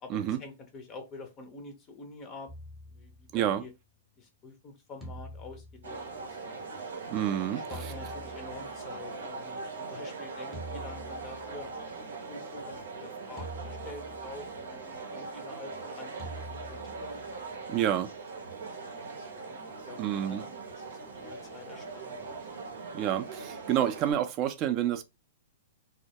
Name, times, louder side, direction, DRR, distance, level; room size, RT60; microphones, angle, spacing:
voice 1, 0.0-2.5 2.9-3.7 4.2-6.6 7.5-9.6 9.9-11.7 12.3-16.2 16.5-17.2 18.4-19.6 19.9-22.5, left 3 dB, 25° left, 0.5 m, -47 dB
sound 1, 2.5-3.8 5.0-6.7 7.7-9.0 10.5-11.9 13.4-14.6 16.2-17.6, equal, 5° right, 0.7 m, -46 dB
sound 2, 5.8-24.1, right 4 dB, 90° right, 0.8 m, -41 dB
voice 2, 7.1-7.6 17.7-18.1 20.0-20.4 22.9-25.0, right 11 dB, 35° right, 0.4 m, -28 dB
2.2 x 2.1 x 2.8 m
hypercardioid pair, 140°, 0 cm